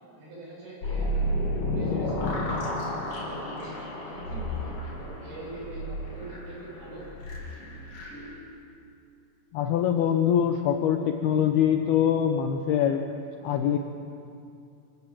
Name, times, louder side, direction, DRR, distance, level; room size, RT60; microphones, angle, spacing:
voice 1, 0.1-3.8 4.1-7.1, right 2 dB, 65° right, -5 dB, 9.7 m, -43 dB
sound 1, 0.8-8.3, left 1 dB, 45° left, 4.2 m, -31 dB
voice 2, 9.5-13.1 13.4-13.8, left 9 dB, 90° left, 5 dB, 2.2 m, -24 dB
26.0 x 16.5 x 7.4 m, 2.6 s
omnidirectional pair, 5.5 m